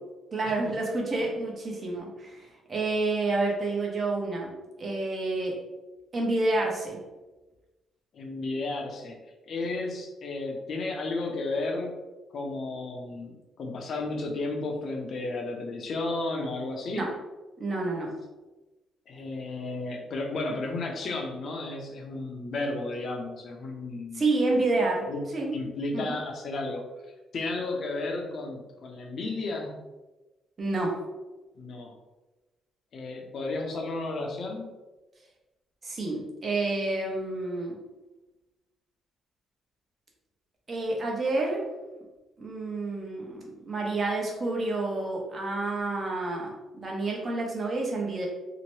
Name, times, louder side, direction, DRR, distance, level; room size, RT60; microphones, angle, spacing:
voice 1, 0.3-4.5 4.8-5.5 6.1-7.0 16.9-17.1 17.6-18.1 24.1-25.1 25.3-25.5 25.9-26.0 30.6-31.0 35.8-37.8 40.7-41.6 42.4-48.3, right 2 dB, 40° right, -1 dB, 0.8 m, -29 dB
voice 2, 8.1-9.2 9.4-12.0 12.3-17.1 19.1-24.2 25.1-25.2 25.5-26.8 27.3-29.8 31.6-32.0 32.9-34.7, left 2 dB, 55° left, 1 dB, 0.6 m, -33 dB
2.8 x 2.1 x 3.1 m, 1.1 s
cardioid pair, 90°, 0 cm